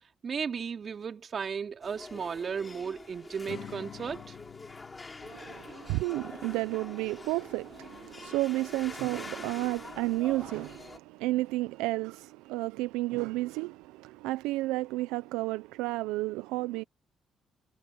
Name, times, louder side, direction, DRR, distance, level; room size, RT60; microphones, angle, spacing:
voice 1, 0.2-4.3, right 6 dB, 50° right, 3.4 m, -35 dB
sound 1, 1.8-11.0, left 3 dB, 25° left, 6.3 m, -46 dB
Acoustic guitar / Strum, 3.5-6.8, left 10 dB, 65° left, 3.2 m, -48 dB
voice 2, 5.2-16.8, right 19 dB, 85° right, 0.6 m, -32 dB
supercardioid pair, 55°, 0 cm